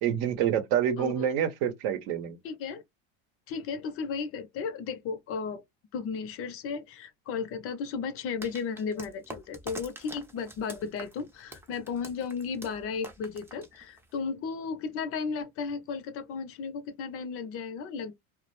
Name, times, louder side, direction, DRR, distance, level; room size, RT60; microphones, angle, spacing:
voice 1, 0.0-2.4, right 9 dB, 65° right, 0.7 m, -27 dB
voice 2, 1.0-1.3 2.4-2.8 3.5-5.6 5.9-18.2, left 5 dB, 45° left, 0.5 m, -34 dB
sound 1, 8.4-14.2, right 1 dB, 5° right, 0.4 m, -46 dB
2.2 x 2.0 x 2.9 m
supercardioid pair, 115°, 33 cm